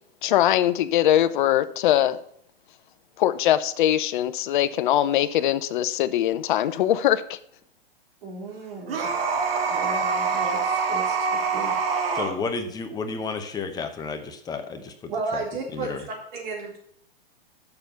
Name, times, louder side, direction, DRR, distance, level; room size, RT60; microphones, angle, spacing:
voice 1, 0.2-2.2 3.2-7.4, left 12 dB, 55° left, 13 dB, 0.7 m, -22 dB
voice 2, 8.2-9.1 9.7-12.0 15.1-15.9 16.3-16.8, right 3 dB, 55° right, -1 dB, 3.7 m, -34 dB
sound 1, 8.9-12.3, right 5 dB, 70° right, 1.8 m, -25 dB
voice 3, 12.1-15.4 15.7-16.0, left 4 dB, 15° left, 6 dB, 0.8 m, -32 dB
6.9 x 6.5 x 6.7 m, 0.66 s
hypercardioid pair, 135°, 30 cm